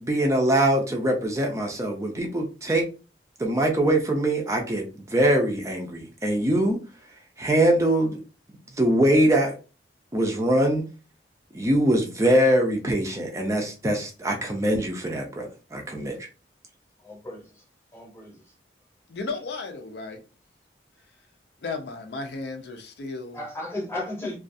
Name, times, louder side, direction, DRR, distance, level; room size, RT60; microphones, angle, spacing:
voice 1, 0.0-2.8 3.4-4.8 5.1-6.8 7.4-8.2 8.8-9.6 10.1-10.8 11.5-16.3, right 1 dB, 15° right, 0.4 m, -23 dB
voice 2, 17.0-17.6 17.9-18.4 23.3-24.4, left 1 dB, 15° left, 0.8 m, -35 dB
voice 3, 19.1-20.2 21.6-23.4, left 3 dB, 70° left, 0.5 m, -34 dB
2.3 x 2.3 x 2.5 m
head